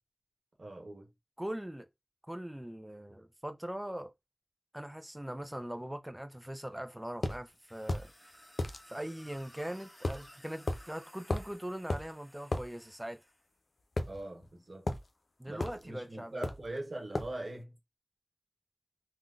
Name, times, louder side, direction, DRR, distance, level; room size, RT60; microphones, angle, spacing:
voice 1, 0.6-1.1 14.1-14.9 15.5-17.7, right 2 dB, 80° right, 1.0 m, -42 dB
voice 2, 1.4-1.9 2.3-4.1 4.7-8.4 8.9-13.2 15.4-16.5, right 1 dB, 10° right, 0.3 m, -41 dB
sound 1, 7.2-7.4 7.9-8.1 8.6-8.8 10.0-10.3 10.7-10.8 11.3-11.5 11.9-12.1 12.5-12.7 14.0-14.5 14.9-15.1 15.6-15.8 16.4-16.7 17.1-17.4, left 2 dB, 80° left, 0.4 m, -34 dB
sound 2, 7.5-13.5, equal, 25° left, 1.4 m, -57 dB
3.6 x 2.0 x 2.4 m
wide cardioid pair, 45°, 0 cm